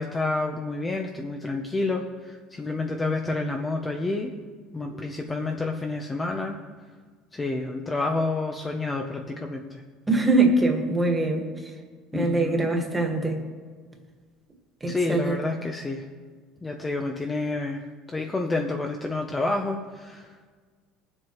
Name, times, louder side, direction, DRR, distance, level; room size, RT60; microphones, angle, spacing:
voice 1, 0.0-4.4 4.7-6.6 7.3-9.8 12.1-12.7 14.9-16.1 16.6-20.4, left 2 dB, 15° left, 3 dB, 0.7 m, -29 dB
voice 2, 10.1-11.5 12.1-13.4 14.8-15.4, right 2 dB, 10° right, 2 dB, 1.7 m, -23 dB
20.5 x 7.5 x 3.1 m, 1.5 s
cardioid pair, 130°, 0 cm